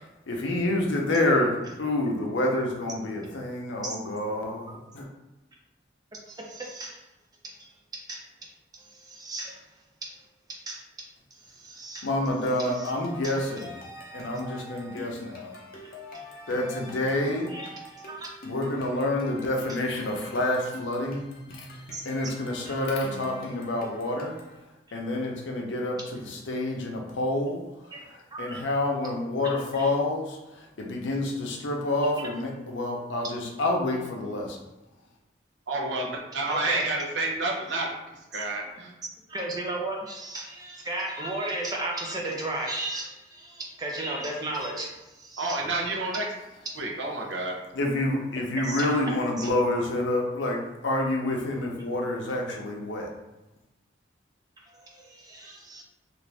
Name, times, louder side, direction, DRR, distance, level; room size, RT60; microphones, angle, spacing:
voice 1, 0.3-5.0 12.0-13.8 14.1-15.5 16.5-17.6 18.4-21.3 21.5-21.7 22.0-24.3 24.9-27.6 28.1-34.6 47.7-53.1, left 1 dB, 90° left, 1 dB, 0.6 m, -28 dB
voice 2, 6.3-7.1 7.4-8.3 8.8-10.1 10.5-10.8 11.4-12.1 12.8-12.9 13.2-13.3 16.1-16.2 17.5-18.3 21.9-22.0 22.7-22.9 27.9-28.0 28.3-28.6 29.7-29.9 32.2-32.3 36.5-36.9 39.3-45.6 48.6-48.9 49.4-49.5 54.8-55.8, right 2 dB, 20° right, -2 dB, 0.5 m, -35 dB
sound 1, 12.3-24.6, left 2 dB, 50° left, 0.6 m, -43 dB
voice 3, 35.7-37.9 38.3-38.9 45.4-46.3 46.8-47.6, right 2 dB, 80° right, 0 dB, 0.7 m, -29 dB
2.5 x 2.5 x 3.2 m, 1.0 s
head